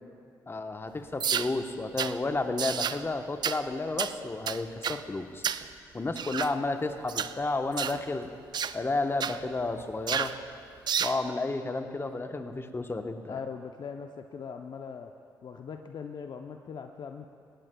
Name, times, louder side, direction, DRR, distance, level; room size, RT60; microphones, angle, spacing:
voice 1, 0.5-5.4 5.9-8.3 8.7-10.3 11.0-13.4, left 3 dB, 25° left, 6 dB, 1.0 m, -32 dB
sound 1, 1.2-1.5 2.0-2.1 2.6-3.0 3.4-3.6 4.0-4.1 4.5-5.0 5.4-5.7 6.2-6.5 7.1-7.3 7.8-8.0 8.5-8.8 9.2-9.4 10.1-10.4 10.9-11.2, right 8 dB, 55° right, 0.4 m, -30 dB
voice 2, 13.2-15.1 15.4-17.3, left 6 dB, 55° left, 5 dB, 0.6 m, -40 dB
18.0 x 16.0 x 2.3 m, 2.5 s
supercardioid pair, 50°, 9 cm